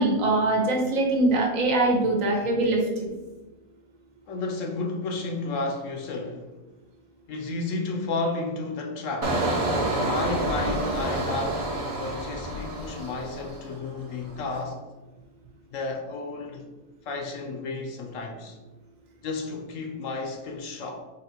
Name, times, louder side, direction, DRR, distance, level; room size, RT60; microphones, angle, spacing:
voice 1, 0.0-3.1, right 2 dB, 65° right, 1.2 m, -23 dB
voice 2, 4.3-6.5 7.3-9.4 10.0-14.8 15.7-16.6 17.1-18.6 19.2-21.0, left 3 dB, 65° left, 0.9 m, -32 dB
Engine, 9.2-13.9 14.2-14.6, right 1 dB, 40° right, 0.5 m, -28 dB
4.1 x 2.9 x 4.3 m
omnidirectional pair, 1.5 m